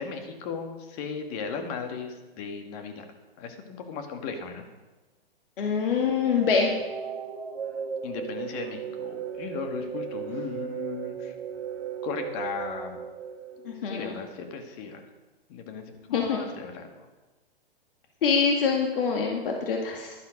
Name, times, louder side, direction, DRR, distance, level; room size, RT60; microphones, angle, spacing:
voice 1, 0.0-3.1 3.4-4.6 8.0-11.3 12.0-13.0 13.9-15.0 15.5-17.1, left 5 dB, 40° left, 6 dB, 1.9 m, -36 dB
voice 2, 5.6-6.7 13.7-14.1 16.1-16.5 18.2-20.1, left 5 dB, 60° left, 1 dB, 2.1 m, -25 dB
sound 1, 6.2-14.2, right 7 dB, 85° right, 1.5 m, -36 dB
12.0 x 11.0 x 5.2 m, 1.2 s
hypercardioid pair, 125°, 31 cm